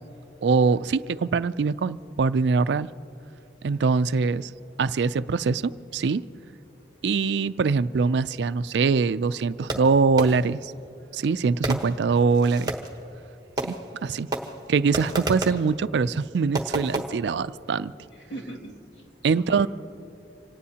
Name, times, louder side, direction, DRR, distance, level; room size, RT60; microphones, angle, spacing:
voice 1, 0.4-2.9 3.6-4.5 4.8-6.2 7.0-10.7 11.1-12.7 13.6-13.8 14.0-14.3 14.7-17.9 19.2-19.7, right 4 dB, 75° right, 15 dB, 0.4 m, -23 dB
Fireworks, 9.7-10.6 11.6-13.0 13.6-14.0 14.3-15.7 16.5-17.0, right 2 dB, 20° right, 1.1 m, -31 dB
voice 2, 14.8-15.6 18.1-19.7, right 1 dB, 90° left, -2 dB, 2.3 m, -41 dB
26.0 x 18.0 x 2.9 m, 2.8 s
head